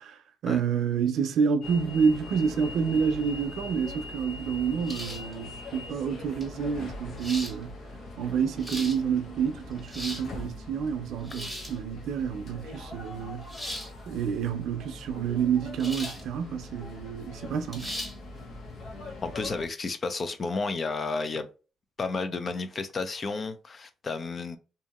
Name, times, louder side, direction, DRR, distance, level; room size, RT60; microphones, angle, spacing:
voice 1, 0.0-7.7 8.2-13.5 14.1-17.9, right 6 dB, 75° right, 0.5 m, -28 dB
sound 1, 1.6-19.7, left 2 dB, 65° left, 0.8 m, -42 dB
sound 2, 4.9-5.3 6.4-6.5 7.2-7.5 8.4-9.0 9.7-10.3 11.2-11.8 13.5-13.9 15.8-16.2 16.6-16.7 17.7-18.1, equal, 10° left, 1.4 m, -37 dB
voice 2, 19.2-21.5 22.0-24.6, left 4 dB, 40° left, 0.5 m, -32 dB
2.7 x 2.7 x 2.3 m
cardioid pair, 90°, 0 cm